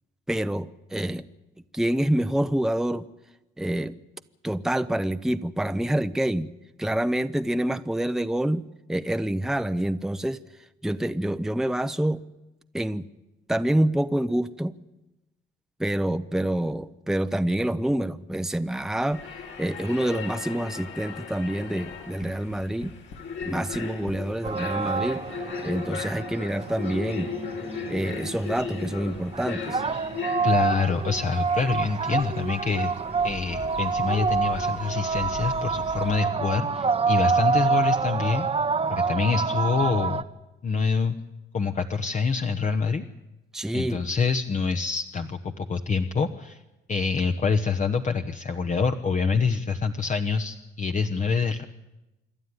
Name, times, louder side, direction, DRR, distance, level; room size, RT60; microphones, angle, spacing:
voice 1, 0.3-1.2 1.7-3.1 3.6-4.0 4.4-6.5 6.8-10.4 10.8-12.2 12.7-13.1 13.5-14.7 15.8-19.3 19.6-22.9 23.4-25.2 25.6-27.3 27.9-29.8 43.5-44.1, right 1 dB, ahead, 11 dB, 0.7 m, -27 dB
sound 1, 19.1-36.2, left 6 dB, 70° left, 4.9 m, -38 dB
Tap, 21.6-24.7 25.5-25.6 25.9-26.0, left 4 dB, 85° left, 2.7 m, -45 dB
sound 2, 24.4-40.2, right 5 dB, 30° right, 0.9 m, -27 dB
voice 2, 30.4-32.9 33.2-38.5 38.9-40.2 40.6-41.2 41.5-43.0 43.7-46.6 46.9-51.6, left 5 dB, 40° left, 6 dB, 1.0 m, -26 dB
27.0 x 11.5 x 9.6 m, 1.0 s
cardioid pair, 90°, 20 cm